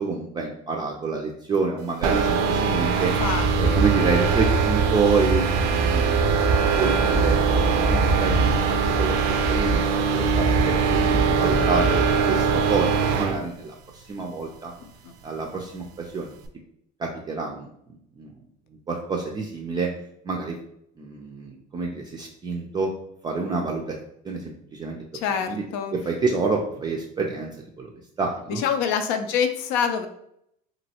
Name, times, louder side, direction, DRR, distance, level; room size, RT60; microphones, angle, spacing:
voice 1, 0.0-3.1 3.6-6.4 6.8-9.8 10.1-14.7 15.2-16.3 17.0-17.7 18.2-18.3 18.9-19.9 20.2-20.6 21.0-22.9 23.2-24.0 24.2-25.0 25.5-25.6 25.9-27.5 27.8-27.9 28.2-28.6, right 4 dB, 20° right, 0 dB, 0.4 m, -28 dB
sound 1, 2.0-13.4, right 6 dB, 80° right, 0.5 m, -23 dB
Wind, 2.9-12.1, right 2 dB, 30° left, 0.7 m, -25 dB
voice 2, 3.2-3.8 15.0-15.1 25.1-25.9 28.5-30.1, left 7 dB, 70° left, 8 dB, 0.5 m, -26 dB
3.0 x 2.6 x 2.8 m, 0.73 s
supercardioid pair, 115°, 20 cm